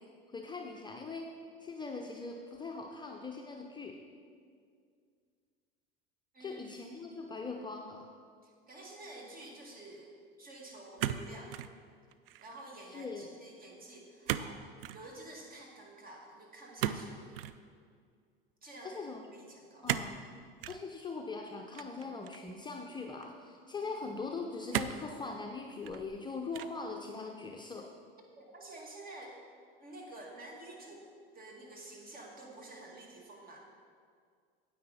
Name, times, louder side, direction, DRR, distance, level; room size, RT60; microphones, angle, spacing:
voice 1, 0.3-1.3 1.6-4.0 6.4-8.1 12.9-13.3 18.8-19.3 19.8-20.2 20.7-27.9, left 4 dB, 15° left, 1 dB, 0.7 m, -41 dB
voice 2, 6.3-6.7 8.4-10.1 10.4-11.5 12.4-17.5 18.6-19.9 28.4-29.4 29.8-31.1 31.3-33.6, right 2 dB, 30° right, -1 dB, 2.3 m, -50 dB
sound 1, 11.0-11.7 12.1-12.5 14.3-14.5 14.8-15.0 16.8-17.6 19.8-20.2 20.6-20.8 21.7-22.5 23.2-23.3 24.7-25.1 25.7-26.2 26.5-26.9, right 11 dB, 75° right, 0.5 m, -36 dB
9.4 x 8.8 x 4.2 m, 2.2 s
hypercardioid pair, 80°, 29 cm